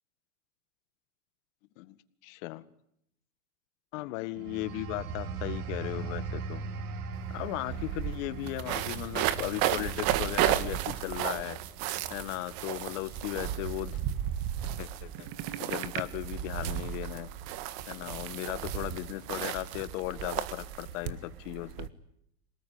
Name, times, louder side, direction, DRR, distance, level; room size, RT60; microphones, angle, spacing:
voice 1, 2.2-2.6 3.9-6.6 7.3-11.6 12.1-14.0 14.8-15.3 15.6-17.3 17.9-21.9, left 18 dB, 55° left, 13 dB, 1.9 m, -37 dB
sound 1, 4.4-14.7 15.1-15.4, right 5 dB, 70° right, 2.5 m, -41 dB
sound 2, 7.1-7.2 7.4-21.9, right 12 dB, 50° right, 1.7 m, -33 dB
27.0 x 19.5 x 9.5 m, 0.77 s
supercardioid pair, 135°, 47 cm